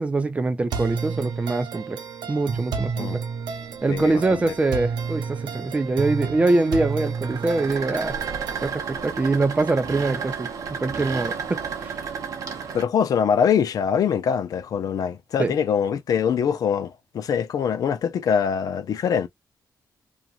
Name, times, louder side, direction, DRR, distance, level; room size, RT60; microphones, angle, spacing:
voice 1, 0.0-2.0 2.3-3.2 3.8-8.1 8.6-10.5 10.8-11.9 15.4-15.5, right 3 dB, 20° right, 0.6 m, -24 dB
sound 1, 0.7-8.7, right 5 dB, 85° right, 0.8 m, -31 dB
sound 2, 3.0-12.8, right 6 dB, 55° right, 0.8 m, -34 dB
voice 2, 3.9-4.5 12.7-19.3, left 7 dB, 60° left, 0.6 m, -23 dB
3.0 x 2.5 x 2.5 m
wide cardioid pair, 165°, 7 cm